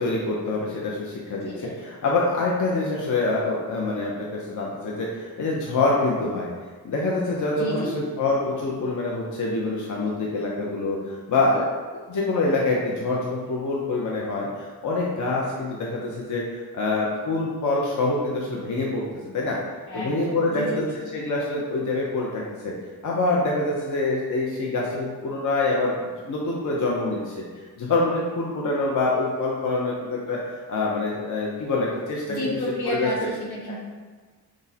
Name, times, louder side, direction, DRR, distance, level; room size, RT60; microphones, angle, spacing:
voice 1, 0.0-6.5 6.8-11.0 11.3-11.7 12.1-19.0 19.3-19.6 19.9-20.8 21.1-22.7 23.0-27.4 27.8-32.5 32.9-33.3 33.7-33.8, left 2 dB, 50° left, -3 dB, 0.6 m, -25 dB
voice 2, 7.5-7.9 19.9-21.0 32.3-33.7, left 1 dB, 80° left, -6 dB, 1.3 m, -31 dB
6.1 x 2.1 x 2.7 m, 1.4 s
wide cardioid pair, 120°, 38 cm